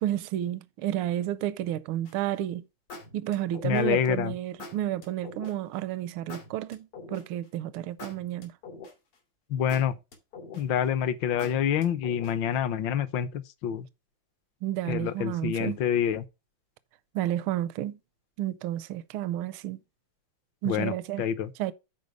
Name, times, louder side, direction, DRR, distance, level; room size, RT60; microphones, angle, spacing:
voice 1, 0.0-2.6 3.1-8.5 14.6-15.8 17.1-18.0 18.4-19.8 20.6-21.2 21.6-21.7, right 12 dB, 80° right, 1.4 m, -31 dB
sound 1, 2.1-2.4 2.9-4.1 4.6-5.5 6.3-7.5 8.0-9.1 9.7-10.8 11.4-12.5, left 3 dB, 85° left, 3.4 m, -44 dB
voice 2, 3.6-4.3 9.5-9.9 10.5-13.9 14.9-16.2 20.6-21.5, left 9 dB, 65° left, 1.4 m, -27 dB
10.5 x 4.6 x 4.7 m
omnidirectional pair, 2.4 m